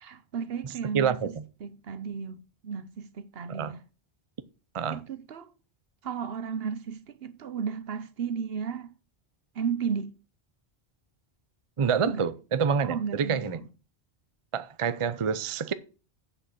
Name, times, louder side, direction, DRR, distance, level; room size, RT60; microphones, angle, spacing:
voice 1, 0.0-1.2 1.6-3.8 4.9-5.5 6.0-8.9 9.5-10.1 12.0-12.3 12.8-13.7, right 6 dB, 65° right, 1.0 m, -34 dB
voice 2, 0.9-1.3 3.5-3.7 4.7-5.0 11.8-13.6 14.5-15.7, right 6 dB, 35° right, 0.6 m, -27 dB
7.9 x 6.3 x 7.5 m
omnidirectional pair, 1.1 m